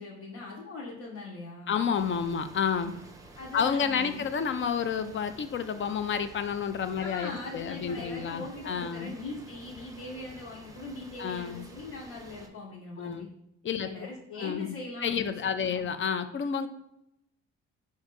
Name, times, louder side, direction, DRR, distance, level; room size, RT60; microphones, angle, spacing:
voice 1, 0.0-1.8 3.3-4.3 7.0-13.3 13.8-15.9, left 2 dB, 65° left, -5 dB, 1.1 m, -41 dB
voice 2, 1.7-2.9 3.5-9.1 11.2-11.7 13.0-13.3 13.6-13.9 14.4-16.7, left 7 dB, 40° left, 10 dB, 0.4 m, -30 dB
sound 1, 1.9-12.5, right 2 dB, 10° right, 0.6 m, -50 dB
4.7 x 2.7 x 3.8 m, 0.81 s
cardioid pair, 90°, 30 cm